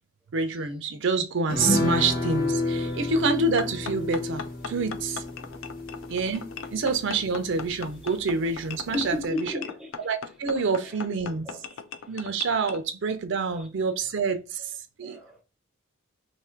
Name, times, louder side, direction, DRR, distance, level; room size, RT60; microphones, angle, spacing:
voice 1, 0.3-5.2 6.1-6.5 6.7-9.5 10.0-11.5 12.1-15.2, right 4 dB, 55° right, 0.4 m, -27 dB
sound 1, 1.5-8.3 8.6-8.7 9.0-9.2, left 2 dB, 40° left, 0.9 m, -30 dB
voice 2, 2.8-3.1 6.6-6.7 8.0-8.2 8.9-9.9 10.6-11.1 11.4-12.3 13.5-13.7 14.6-14.7 15.0-15.4, left 2 dB, 5° right, 0.5 m, -36 dB
sound 2, 3.6-12.8, left 6 dB, 65° left, 0.4 m, -39 dB
2.8 x 2.4 x 4.2 m
head